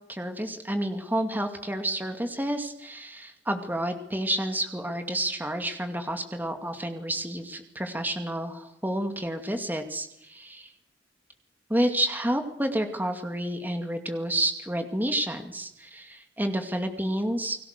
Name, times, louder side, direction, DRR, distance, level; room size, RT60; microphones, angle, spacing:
voice 1, 0.1-10.7 11.7-17.6, right 1 dB, 10° right, 6 dB, 2.4 m, -30 dB
29.5 x 20.5 x 6.7 m, 0.79 s
head